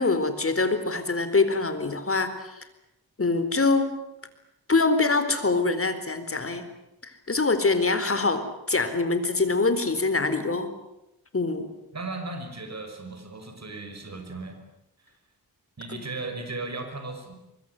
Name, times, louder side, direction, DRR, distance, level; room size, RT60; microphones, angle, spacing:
voice 1, 0.0-2.5 3.2-3.9 4.7-6.6 7.0-10.7 11.3-11.7, left 3 dB, 35° left, 10 dB, 4.2 m, -24 dB
voice 2, 11.9-14.6 15.0-15.1 15.8-17.3, right 3 dB, 45° right, 6 dB, 5.8 m, -36 dB
24.5 x 22.5 x 9.6 m, 0.88 s
wide cardioid pair, 85°, 38 cm